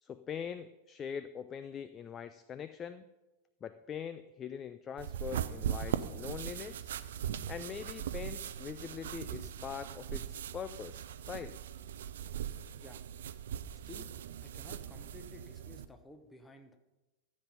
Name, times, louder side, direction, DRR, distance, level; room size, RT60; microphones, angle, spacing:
voice 1, 0.0-3.0 3.6-6.9 7.5-11.6, left 7 dB, 25° left, 13 dB, 0.4 m, -43 dB
sound 1, 5.0-15.9, right 9 dB, 60° right, 0.5 m, -40 dB
voice 2, 14.4-16.8, left 2 dB, 10° left, 7 dB, 1.1 m, -53 dB
13.5 x 7.4 x 5.4 m, 1.1 s
figure-of-eight pair, 90°, 0 cm